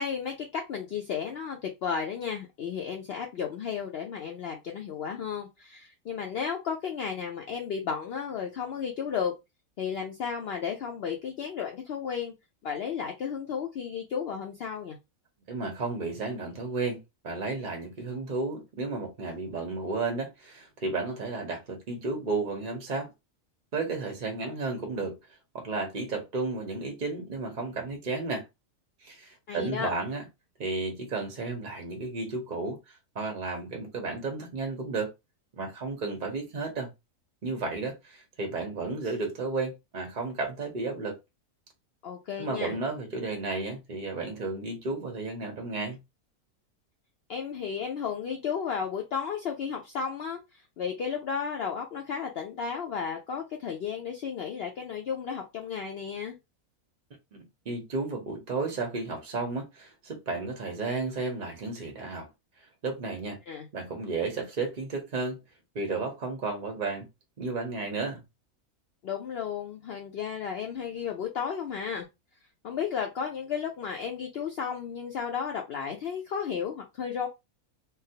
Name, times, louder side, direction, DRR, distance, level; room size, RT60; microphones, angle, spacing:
voice 1, 0.0-9.3 9.8-12.3 12.6-15.0 29.5-29.9 42.0-42.7 47.3-56.4 63.5-63.7 69.0-72.1 72.6-77.3, left 7 dB, 75° left, 0.5 m, -33 dB
voice 2, 15.5-23.1 23.7-25.2 25.5-28.4 29.0-30.3 30.6-35.1 35.5-36.9 37.4-41.2 42.4-46.0 57.7-62.3 62.8-63.4 63.7-65.4 65.7-67.1 67.4-68.2, right 3 dB, 50° right, 0.6 m, -33 dB
3.7 x 2.1 x 2.7 m
omnidirectional pair, 1.6 m